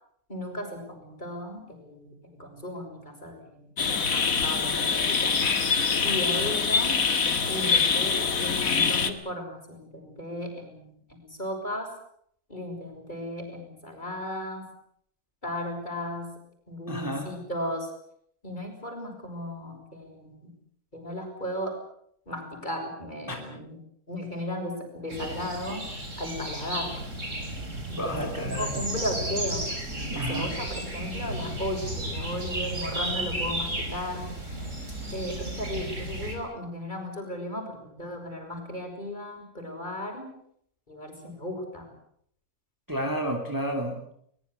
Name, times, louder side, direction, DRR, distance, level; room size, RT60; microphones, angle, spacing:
voice 1, 0.3-5.4 6.0-7.0 7.5-11.9 12.5-14.7 15.4-16.3 16.7-17.9 18.4-20.5 20.9-21.8 22.3-23.8 24.1-25.9 26.2-27.0 27.9-29.7 30.1-34.3 35.1-40.3 40.9-41.9, left 1 dB, 30° left, 3 dB, 6.6 m, -35 dB
sound 1, 3.8-9.1, left 5 dB, 70° left, 2.2 m, -24 dB
voice 2, 16.9-17.3 23.3-23.4 28.0-28.8 30.1-30.5 42.9-44.0, equal, 15° right, 3 dB, 2.9 m, -31 dB
sound 2, 25.1-36.4, right 1 dB, 55° right, 5.5 m, -33 dB
22.5 x 21.0 x 8.2 m, 0.68 s
omnidirectional pair, 1.6 m